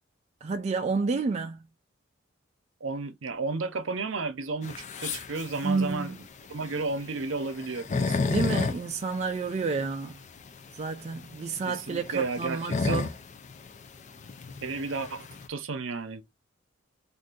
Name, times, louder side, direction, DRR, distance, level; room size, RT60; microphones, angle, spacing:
voice 1, 0.4-1.7 5.6-6.2 8.3-10.2 10.8-13.1, right 4 dB, 35° right, 0.3 m, -30 dB
voice 2, 2.8-6.1 6.5-8.3 11.7-13.0 14.6-16.2, right 3 dB, 75° right, 0.6 m, -33 dB
sound 1, 4.6-15.5, left 4 dB, 40° left, 0.4 m, -33 dB
2.6 x 2.5 x 3.7 m
head